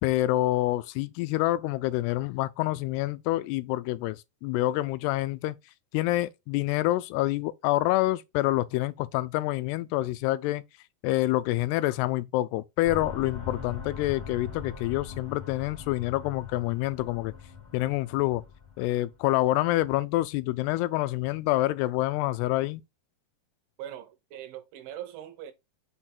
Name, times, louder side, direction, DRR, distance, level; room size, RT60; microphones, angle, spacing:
voice 1, 0.0-5.6 5.9-10.6 11.0-17.3 17.7-18.4 18.8-22.8, left 17 dB, 85° left, 2.6 m, -27 dB
sound 1, 12.8-19.1, left 6 dB, 40° left, 0.9 m, -41 dB
voice 2, 23.8-25.5, right 11 dB, 75° right, 2.5 m, -41 dB
6.1 x 4.4 x 4.2 m
omnidirectional pair, 4.7 m